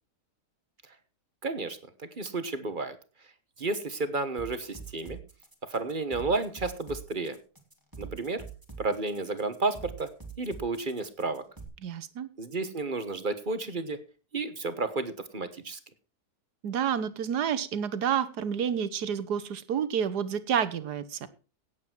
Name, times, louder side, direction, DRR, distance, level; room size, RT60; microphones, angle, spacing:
voice 1, 1.4-3.0 3.6-5.2 5.7-7.4 8.0-8.4 8.8-10.1 10.4-11.4 12.4-14.0 14.3-15.8, right 3 dB, 35° right, 11 dB, 1.3 m, -32 dB
sound 1, 4.4-11.6, right 5 dB, 10° right, 3.0 m, -44 dB
voice 2, 11.8-12.3 16.6-21.3, right 8 dB, 85° right, 13 dB, 1.6 m, -29 dB
17.0 x 8.3 x 4.5 m, 0.35 s
omnidirectional pair, 1.7 m